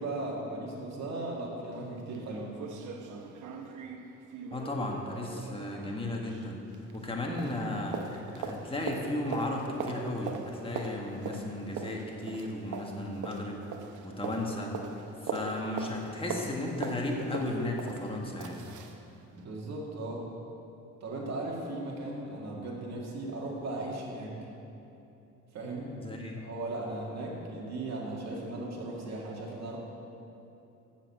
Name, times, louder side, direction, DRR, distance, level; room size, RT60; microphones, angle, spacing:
voice 1, 0.0-2.5 15.7-15.8 18.8-18.9 19.3-20.3 21.0-24.4 25.5-26.0 26.3-29.8, right 2 dB, 60° right, -3 dB, 2.0 m, -37 dB
sound 1, 1.7-1.8 2.1-2.2 2.6-7.1 7.4-19.0 19.4-19.5, right 5 dB, 75° right, 0.9 m, -41 dB
voice 2, 4.5-6.6 6.9-13.6 14.0-18.6 26.0-26.4, left 1 dB, 20° left, -1 dB, 1.6 m, -35 dB
7.4 x 7.3 x 7.6 m, 2.9 s
cardioid pair, 90°, 30 cm